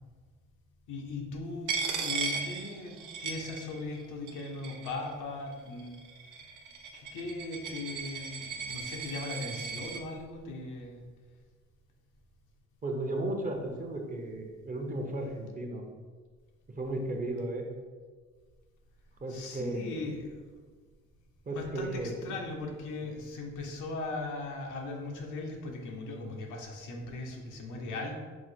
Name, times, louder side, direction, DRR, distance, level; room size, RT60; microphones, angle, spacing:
voice 1, 0.9-6.0 6.9-11.1 19.3-20.6 21.5-28.1, left 3 dB, 85° left, 1 dB, 0.8 m, -39 dB
Coin (dropping), 1.7-4.0 4.3-5.1 5.8-10.0, right 5 dB, 85° right, 0.6 m, -37 dB
voice 2, 12.8-15.8 16.7-17.7 19.2-19.8 21.5-22.4, right 1 dB, 30° right, 3 dB, 0.6 m, -34 dB
4.8 x 2.1 x 4.2 m, 1.5 s
cardioid pair, 90°, 30 cm